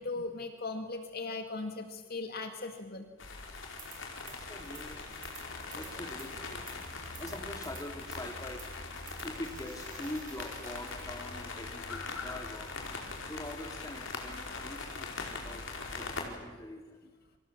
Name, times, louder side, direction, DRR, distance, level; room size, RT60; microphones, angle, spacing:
voice 1, 0.0-3.1 6.8-6.9 13.2-13.3, left 3 dB, 50° left, 5 dB, 2.2 m, -38 dB
sound 1, 3.2-16.3, left 3 dB, 65° left, 4.7 m, -41 dB
sound 2, 3.8-4.4 4.6-11.1, right 8 dB, 40° right, 6.7 m, -53 dB
voice 2, 4.3-5.0 5.7-6.7 7.2-8.6 9.2-12.7 13.3-15.1 15.4-15.6 15.9-17.0, left 1 dB, 15° left, 3 dB, 3.1 m, -44 dB
30.0 x 25.5 x 7.5 m, 1.3 s
head